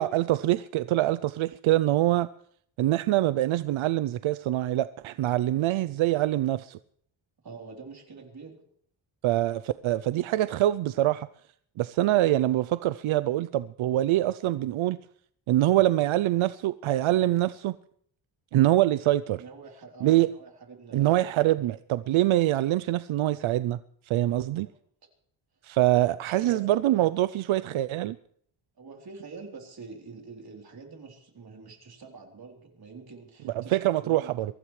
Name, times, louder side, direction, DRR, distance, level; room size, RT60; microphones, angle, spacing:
voice 1, 0.0-2.3 2.8-6.8 9.2-11.3 11.8-15.0 15.5-17.8 18.5-19.4 20.0-20.3 20.9-23.8 24.1-24.7 25.6-28.2 33.6-34.5, right 14 dB, 85° right, 0.5 m, -24 dB
voice 2, 7.4-8.6 19.3-21.6 24.7-24.8 25.9-26.6 28.8-34.4, right 4 dB, 50° right, 3.7 m, -46 dB
23.5 x 15.0 x 3.2 m
wide cardioid pair, 145°, 47 cm